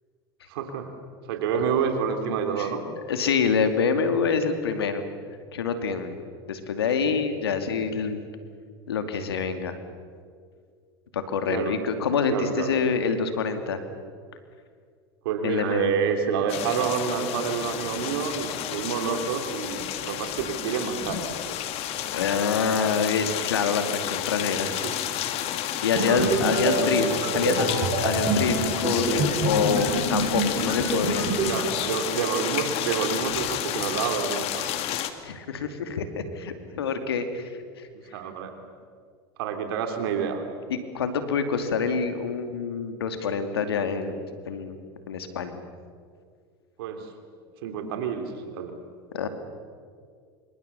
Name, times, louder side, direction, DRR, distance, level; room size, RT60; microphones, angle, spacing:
voice 1, 0.5-0.9 1.3-2.9 7.0-7.1 11.5-11.8 12.3-12.7 15.2-21.7 24.8-24.9 25.9-26.3 26.8-26.9 31.4-34.7 38.1-38.5 39.4-40.4 46.8-47.1 47.6-48.8, right 7 dB, 75° right, 6 dB, 3.3 m, -28 dB
voice 2, 3.1-5.0 5.5-6.2 6.5-8.2 8.9-9.8 11.1-13.8 15.4-15.9 22.1-24.8 25.8-31.2 35.2-37.5 37.8-37.9 40.7-44.1 44.5-44.8 45.1-45.6 49.1-49.3, left 5 dB, 90° left, 8 dB, 2.5 m, -26 dB
sound 1, 16.5-35.1, left 11 dB, 55° left, 2.2 m, -31 dB
sound 2, 26.0-31.5, right 2 dB, 40° right, 7.9 m, -26 dB
27.5 x 25.0 x 7.0 m, 2.1 s
hypercardioid pair, 90°, 13 cm